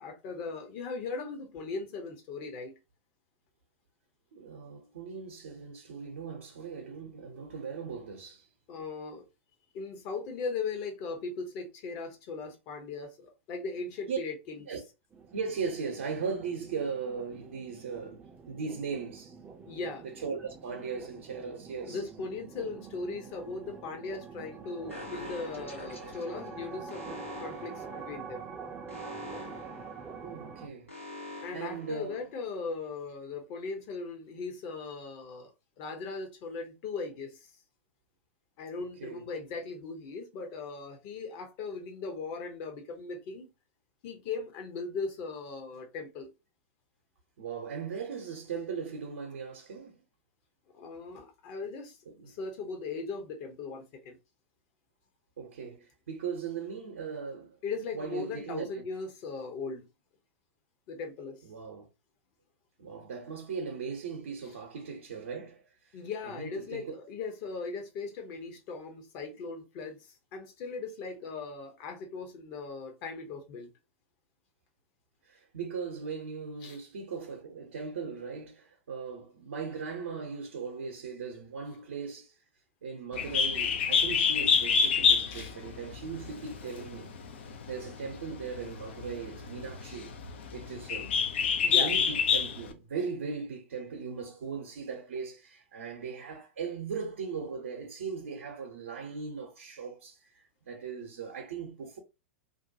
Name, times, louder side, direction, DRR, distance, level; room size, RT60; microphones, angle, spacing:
voice 1, 0.0-2.8 8.7-9.3 9.7-14.6 19.6-20.0 21.9-28.5 31.4-35.5 35.8-37.5 38.6-43.5 44.0-46.3 50.7-52.0 52.2-54.2 57.6-59.9 60.9-61.4 64.4-64.5 65.9-73.7 76.6-76.8 85.3-85.6 91.6-91.9, left 4 dB, 40° left, 0.9 m, -38 dB
voice 2, 4.3-8.5 14.1-14.2 14.7-14.8 15.3-19.3 20.0-22.0 30.2-30.9 31.5-32.2 38.8-39.2 47.4-50.0 52.2-52.3 55.4-57.6 57.9-58.8 61.4-61.9 62.8-66.0 66.2-66.9 75.2-82.3 82.8-87.1 87.6-90.1 90.5-91.2 91.7-102.0, right 5 dB, 65° right, 0.7 m, -38 dB
sound 1, 15.1-30.7, right 5 dB, 20° right, 0.5 m, -46 dB
Alarm, 24.9-32.7, left 2 dB, 90° left, 1.1 m, -46 dB
Bird, 83.1-92.7, left 6 dB, 65° left, 0.5 m, -28 dB
2.6 x 2.2 x 2.6 m
figure-of-eight pair, 100°, 7 cm